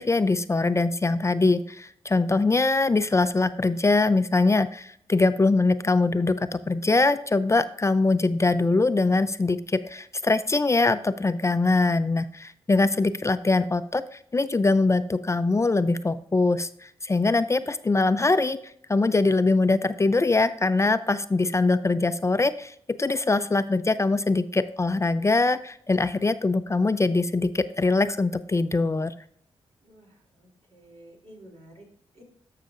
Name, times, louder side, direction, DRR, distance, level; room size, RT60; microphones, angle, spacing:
voice 1, 0.0-18.6 18.9-29.1, left 3 dB, 25° left, 12 dB, 0.4 m, -23 dB
voice 2, 29.8-31.8 32.1-32.2, right 1 dB, 70° right, -2 dB, 3.1 m, -51 dB
12.0 x 5.7 x 2.6 m, 0.64 s
cardioid pair, 55°, 11 cm